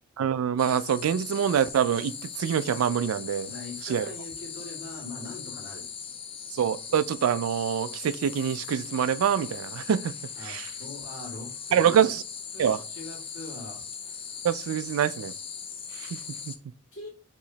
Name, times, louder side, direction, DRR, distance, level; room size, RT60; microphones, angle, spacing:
voice 1, 0.2-3.5 3.8-4.1 6.5-10.1 10.4-10.7 11.7-12.2 12.6-12.8 14.4-15.3 15.9-16.5, right 8 dB, 90° right, 0.3 m, -25 dB
sound 1, 0.6-16.6, left 6 dB, 25° left, 0.4 m, -39 dB
voice 2, 3.5-5.9 10.4-12.1 12.5-13.8 16.9-17.1, left 2 dB, 60° left, 2.0 m, -42 dB
4.8 x 3.1 x 2.7 m
head